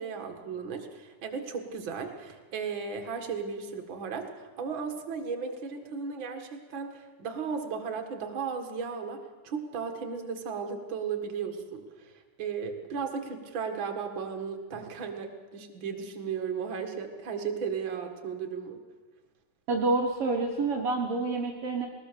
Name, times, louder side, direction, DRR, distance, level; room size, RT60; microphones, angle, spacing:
voice 1, 0.0-9.2 9.4-12.1 12.4-18.8, right 6 dB, 45° right, 4 dB, 1.8 m, -35 dB
voice 2, 19.7-21.9, right 3 dB, 60° right, 0 dB, 1.5 m, -28 dB
20.0 x 19.5 x 6.9 m, 1.4 s
omnidirectional pair, 4.5 m